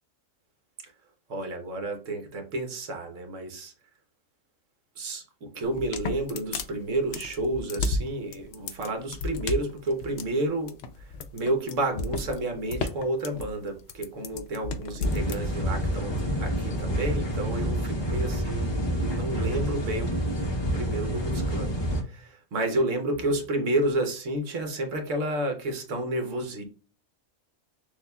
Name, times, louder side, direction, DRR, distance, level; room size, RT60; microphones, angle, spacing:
voice 1, 1.3-3.7 5.0-10.8 11.3-20.2 20.7-21.7 22.5-26.6, right 1 dB, 65° right, 1.2 m, -30 dB
sound 1, 5.6-15.4, left 3 dB, 65° left, 0.8 m, -33 dB
sound 2, 15.0-22.0, equal, 30° left, 0.6 m, -28 dB
6.3 x 2.4 x 2.2 m
omnidirectional pair, 1.4 m